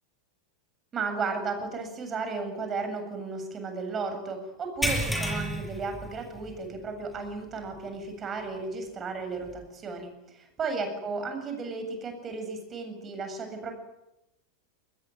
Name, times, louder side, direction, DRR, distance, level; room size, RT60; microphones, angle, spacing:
voice 1, 0.9-13.8, right 4 dB, 25° right, 6 dB, 7.7 m, -34 dB
sound 1, 4.8-6.7 7.0-7.3 7.7-7.8 9.5-9.6, equal, 5° left, 6.6 m, -31 dB
24.0 x 21.0 x 9.4 m, 0.89 s
figure-of-eight pair, 90°, 0 cm